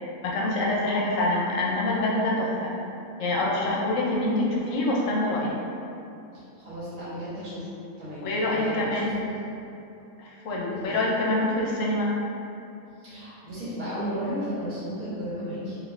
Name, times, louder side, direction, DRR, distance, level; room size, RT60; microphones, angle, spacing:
voice 1, 0.2-2.7 3.2-5.6 8.2-9.1 10.2-12.1, left 1 dB, 70° left, -3 dB, 0.8 m, -25 dB
voice 2, 6.3-7.7 8.0-9.4 10.7-11.0 13.0-15.8, equal, 85° right, -13 dB, 1.6 m, -34 dB
3.4 x 2.9 x 2.4 m, 2.7 s
omnidirectional pair, 1.6 m